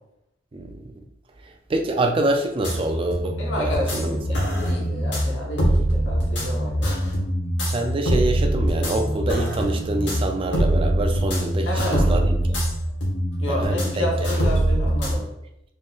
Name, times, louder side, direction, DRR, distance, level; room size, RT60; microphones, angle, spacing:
voice 1, 0.5-0.8 1.7-4.2 7.7-12.6 13.6-14.1, right 2 dB, 30° right, 5 dB, 0.4 m, -26 dB
sound 1, 2.6-15.1, right 1 dB, 70° left, 1.3 m, -23 dB
voice 2, 3.4-7.2 11.6-12.2 13.4-15.3, left 1 dB, 85° left, -2 dB, 1.0 m, -30 dB
3.8 x 3.8 x 2.4 m, 0.84 s
head